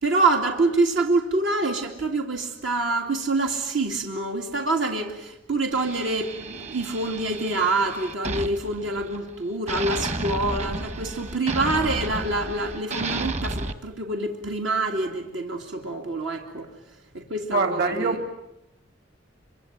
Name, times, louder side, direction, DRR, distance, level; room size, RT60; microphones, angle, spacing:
voice 1, 0.0-16.7 17.1-18.1, right 2 dB, 80° right, 2 dB, 2.7 m, -26 dB
sound 1, 5.7-9.3 9.7-13.7, right 2 dB, 35° right, 1.3 m, -32 dB
voice 2, 17.5-18.4, right 3 dB, 60° right, 7 dB, 3.1 m, -24 dB
26.0 x 24.5 x 9.2 m, 0.88 s
head